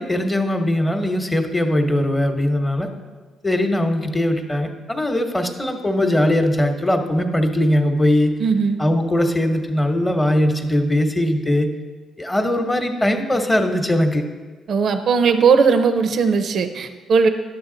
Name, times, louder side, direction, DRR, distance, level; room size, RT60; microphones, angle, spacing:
voice 1, 0.0-2.9 3.4-8.3 8.8-11.7 12.2-14.2, left 1 dB, 15° left, 5 dB, 1.0 m, -20 dB
voice 2, 8.4-8.8 14.7-17.3, right 5 dB, 60° right, 9 dB, 0.6 m, -18 dB
10.5 x 6.8 x 3.8 m, 1.4 s
cardioid pair, 90°, 0 cm